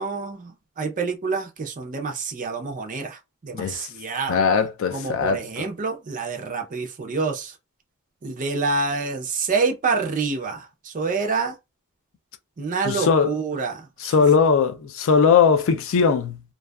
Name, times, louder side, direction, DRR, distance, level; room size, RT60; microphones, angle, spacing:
voice 1, 0.0-4.4 4.9-7.5 8.2-11.5 12.6-14.2, right 4 dB, 40° right, 0.5 m, -27 dB
voice 2, 3.5-3.9 4.3-5.6 12.9-13.3 14.0-16.4, left 6 dB, 65° left, 0.4 m, -19 dB
2.6 x 2.3 x 2.2 m
head